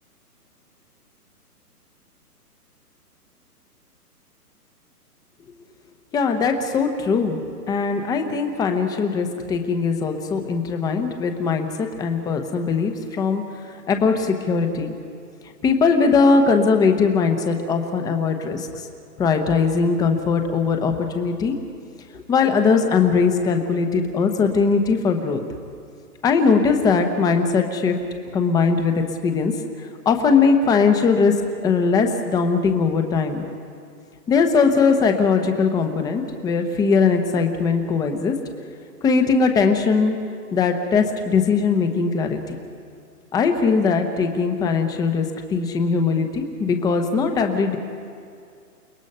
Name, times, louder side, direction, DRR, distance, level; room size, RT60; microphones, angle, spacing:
voice 1, 6.1-7.4 7.7-14.9 15.6-18.9 19.2-21.6 22.1-25.4 26.2-28.0 28.3-29.5 29.8-31.3 31.6-33.5 34.3-38.4 39.0-40.2 40.5-42.5 43.3-47.8, left 5 dB, 10° left, 6 dB, 0.9 m, -20 dB
29.5 x 19.0 x 5.5 m, 2.4 s
hypercardioid pair, 145°, 47 cm